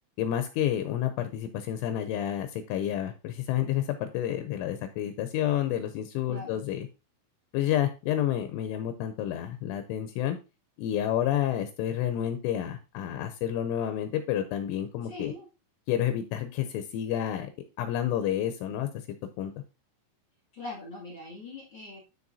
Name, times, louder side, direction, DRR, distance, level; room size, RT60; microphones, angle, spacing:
voice 1, 0.2-6.9 7.5-10.4 10.8-15.3 15.9-17.5 17.8-18.9 19.4-19.5, left 11 dB, 80° left, 9 dB, 3.0 m, -29 dB
voice 2, 6.3-6.6 15.0-15.5 20.5-22.0, left 3 dB, 40° left, -4 dB, 1.7 m, -41 dB
12.5 x 4.5 x 2.7 m, 0.29 s
omnidirectional pair, 5.9 m